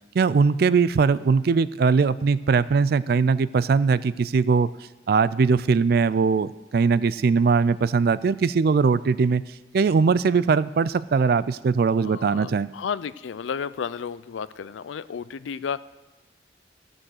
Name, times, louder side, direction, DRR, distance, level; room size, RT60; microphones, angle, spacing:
voice 1, 0.1-4.7 5.1-9.4 9.7-12.7, right 5 dB, 55° right, 17 dB, 0.3 m, -20 dB
voice 2, 12.0-15.8, left 6 dB, 85° left, 17 dB, 0.4 m, -32 dB
14.5 x 6.2 x 6.4 m, 1.1 s
head